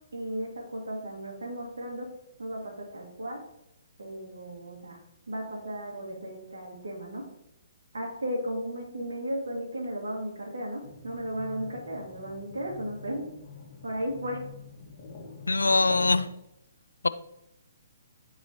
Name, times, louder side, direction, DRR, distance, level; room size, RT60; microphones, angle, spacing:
voice 1, 0.1-2.1 2.4-3.4 4.0-5.0 5.3-7.2 7.9-13.3 13.8-14.4, equal, 70° right, -1 dB, 2.0 m, -35 dB
sound 1, 10.8-16.2, left 4 dB, 40° left, 1.4 m, -45 dB
voice 2, 15.5-16.3, left 3 dB, 80° left, 15 dB, 0.3 m, -22 dB
12.0 x 4.1 x 2.9 m, 0.84 s
figure-of-eight pair, 130°, 0 cm